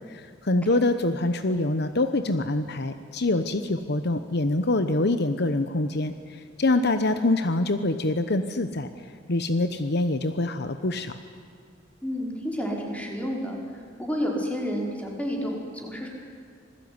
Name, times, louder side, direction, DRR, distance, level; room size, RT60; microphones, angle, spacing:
voice 1, 0.1-6.1 6.6-8.9 9.3-11.2, left 2 dB, 60° left, 10 dB, 1.0 m, -25 dB
voice 2, 12.0-13.6 14.0-16.1, equal, 5° left, 0 dB, 5.2 m, -30 dB
27.0 x 20.5 x 9.7 m, 2.3 s
head